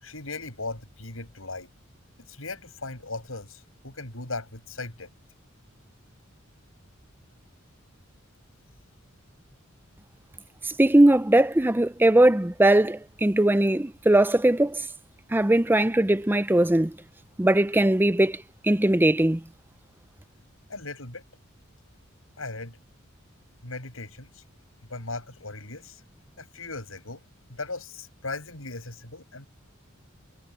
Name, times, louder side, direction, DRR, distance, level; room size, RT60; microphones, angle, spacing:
voice 1, 0.0-1.7 2.3-5.1 20.7-21.2 22.4-22.8 23.6-24.4 24.9-26.0 26.4-27.2 27.5-29.5, left 3 dB, 90° left, 7.4 m, -38 dB
voice 2, 10.6-14.9 15.3-16.9 17.4-19.4, right 1 dB, 10° right, 0.6 m, -20 dB
head